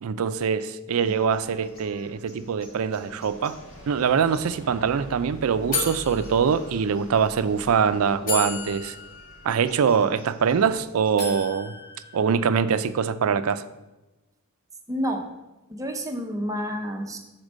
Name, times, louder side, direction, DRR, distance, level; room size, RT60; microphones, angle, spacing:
voice 1, 0.0-3.6 3.9-9.0 9.4-11.7 12.1-13.6, right 6 dB, 70° right, 13 dB, 0.4 m, -23 dB
sound 1, 0.9-11.1, equal, 65° left, 2.1 m, -46 dB
sound 2, 5.0-5.1 5.7-7.1 7.8-7.9 8.3-10.7 11.2-12.8, left 4 dB, 40° left, 1.4 m, -34 dB
voice 2, 14.9-15.3 15.7-17.2, equal, 15° right, 3 dB, 0.7 m, -29 dB
6.6 x 4.4 x 6.1 m, 1.0 s
head